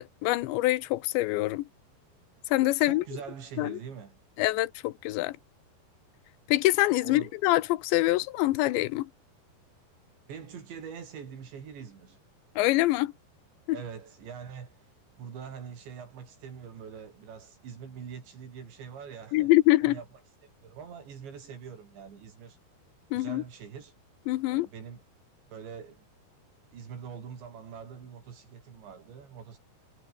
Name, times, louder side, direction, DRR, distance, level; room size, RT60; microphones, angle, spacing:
voice 1, 0.0-1.7 2.5-3.0 3.6-3.8 4.4-5.4 6.5-9.1 12.6-13.1 19.3-20.0 23.1-23.4 24.3-24.7, left 18 dB, 90° left, 3.2 m, -25 dB
voice 2, 2.8-4.2 7.0-7.3 10.3-12.2 13.7-14.9 15.2-19.5 19.8-20.1 20.4-22.6 23.1-23.9 24.5-25.0 25.5-26.0 26.7-29.6, right 7 dB, 85° right, 6.6 m, -44 dB
omnidirectional pair, 5.0 m